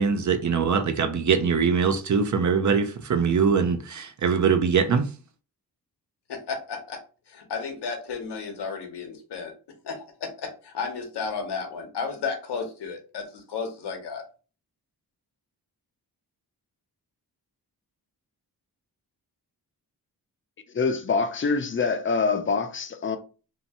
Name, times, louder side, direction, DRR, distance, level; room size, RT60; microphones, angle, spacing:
voice 1, 0.0-5.1, right 6 dB, 50° right, 0.5 m, -22 dB
voice 2, 6.3-7.0 7.3-9.5 9.8-14.2, left 5 dB, 80° left, 0.9 m, -33 dB
voice 3, 20.7-23.2, left 4 dB, 30° left, 0.5 m, -25 dB
2.8 x 2.2 x 2.8 m
cardioid pair, 55°, 40 cm